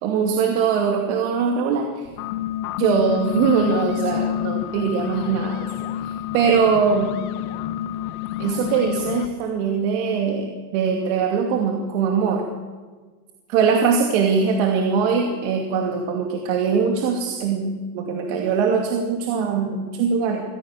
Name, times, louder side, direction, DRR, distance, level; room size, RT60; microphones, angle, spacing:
voice 1, 0.0-2.1 2.8-5.6 6.0-7.2 8.4-10.5 10.7-12.4 13.5-20.4, right 6 dB, 55° right, 2 dB, 2.6 m, -21 dB
sound 1, 2.0-9.3, left 12 dB, 75° left, 1.7 m, -28 dB
24.0 x 15.5 x 7.2 m, 1.4 s
supercardioid pair, 170°, 44 cm